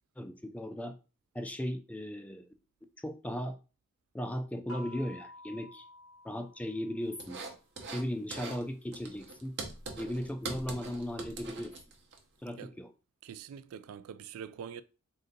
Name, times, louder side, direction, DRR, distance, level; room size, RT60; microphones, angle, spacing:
voice 1, 0.2-0.9 1.3-2.5 3.0-3.6 4.1-5.8 6.2-7.4 7.9-9.5 10.0-11.7 12.4-12.9, equal, 5° left, 0.3 m, -37 dB
sound 1, 4.7-7.4, left 1 dB, 85° left, 1.1 m, -51 dB
sound 2, 7.2-8.0 8.3-8.6 8.9-12.2, right 3 dB, 50° right, 0.8 m, -42 dB
voice 2, 13.2-14.8, right 8 dB, 80° right, 0.3 m, -44 dB
3.8 x 2.6 x 3.8 m
head